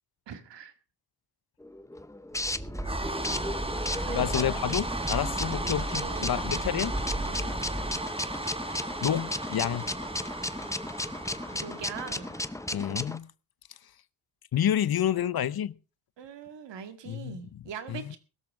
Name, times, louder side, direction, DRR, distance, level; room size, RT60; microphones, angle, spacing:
voice 1, 0.3-0.7 4.1-4.4 5.9-6.3 7.3-7.6 11.5-12.4 16.2-18.2, right 7 dB, 90° right, 2.1 m, -41 dB
sound 1, 1.6-13.2, left 1 dB, 5° left, 0.8 m, -35 dB
sound 2, 2.3-12.8, right 1 dB, 15° right, 1.6 m, -34 dB
voice 2, 4.1-6.9 9.0-9.9 12.7-13.3 14.5-15.8 17.0-17.6 17.9-18.1, left 10 dB, 60° left, 0.8 m, -29 dB
17.0 x 13.0 x 3.7 m
cardioid pair, 75°, 42 cm